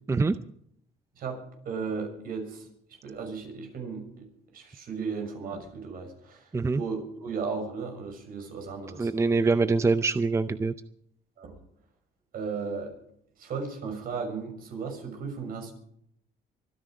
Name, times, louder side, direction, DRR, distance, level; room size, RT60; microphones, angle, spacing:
voice 1, 1.2-9.1 11.4-11.6 12.3-13.0 13.4-15.7, right 5 dB, 60° right, 4 dB, 6.3 m, -36 dB
voice 2, 9.0-10.7, right 3 dB, 15° right, 13 dB, 0.6 m, -24 dB
24.5 x 10.5 x 5.0 m, 0.69 s
cardioid pair, 110°, 17 cm